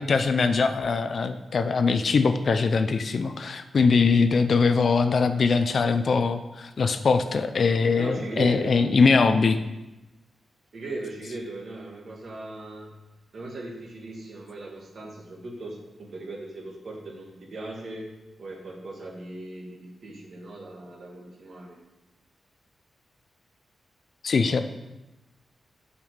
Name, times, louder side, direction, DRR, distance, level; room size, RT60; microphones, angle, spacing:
voice 1, 0.0-9.6 24.2-24.6, left 4 dB, 50° left, 9 dB, 0.5 m, -22 dB
voice 2, 8.0-8.9 10.7-12.9 13.3-18.0 18.4-21.8, right 2 dB, 50° right, -1 dB, 1.8 m, -38 dB
7.1 x 5.2 x 6.5 m, 0.99 s
wide cardioid pair, 165°, 0 cm